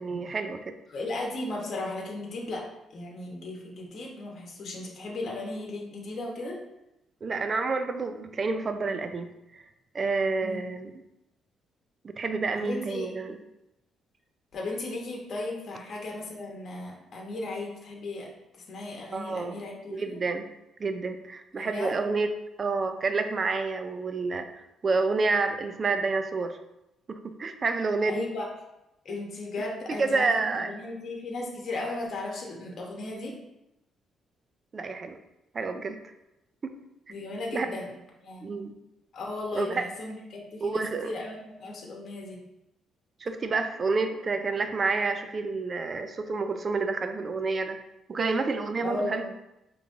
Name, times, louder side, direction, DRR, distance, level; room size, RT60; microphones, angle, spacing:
voice 1, 0.0-0.7 7.2-9.3 9.5-9.6 9.9-10.9 12.0-13.4 19.1-19.6 19.9-20.5 20.8-22.3 22.6-24.5 24.8-26.5 27.1-28.2 30.0-30.7 34.7-35.2 35.5-36.0 36.6-36.7 37.5-37.8 38.4-38.8 39.5-39.8 40.6-41.1 43.2-47.8 48.1-49.3, right 4 dB, 40° right, 8 dB, 0.4 m, -29 dB
voice 2, 0.9-2.6 2.9-6.6 10.4-10.6 12.5-13.1 14.5-18.3 18.7-20.2 21.6-21.9 28.1-28.5 29.0-30.4 30.6-33.3 37.1-37.9 38.2-38.5 39.1-42.4 48.8-49.3, left 2 dB, 55° left, -1 dB, 1.0 m, -36 dB
5.1 x 3.0 x 2.6 m, 0.90 s
cardioid pair, 90°, 0 cm